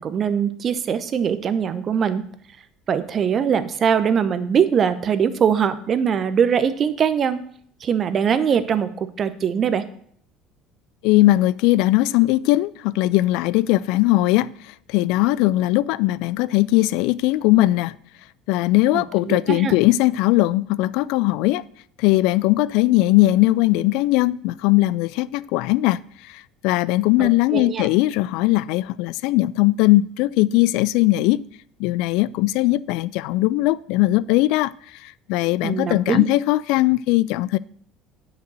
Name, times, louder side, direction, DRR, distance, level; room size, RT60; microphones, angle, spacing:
voice 1, 0.0-2.2 2.9-7.4 7.8-9.8 18.9-19.8 27.2-27.9 35.6-36.2, right 7 dB, 40° right, 0.8 m, -22 dB
voice 2, 11.0-14.5 14.9-17.9 18.5-21.6 22.0-26.0 26.3-31.4 31.8-34.7 35.0-37.6, left 18 dB, 65° left, 0.3 m, -19 dB
9.2 x 5.2 x 6.2 m
hypercardioid pair, 65°, 0 cm